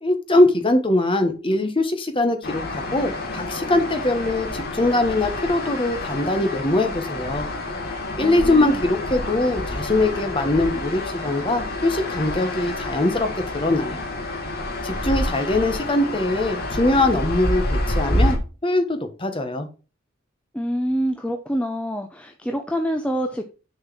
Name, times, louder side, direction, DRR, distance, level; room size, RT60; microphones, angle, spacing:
voice 1, 0.0-7.5 8.2-13.3 13.5-14.0 14.8-19.7, left 2 dB, 25° left, 7 dB, 1.1 m, -22 dB
sound 1, 2.4-18.4, left 1 dB, 45° left, 1.6 m, -28 dB
voice 2, 8.2-8.8 20.5-23.4, equal, 5° left, 4 dB, 0.6 m, -26 dB
6.6 x 4.6 x 6.1 m, 0.33 s
head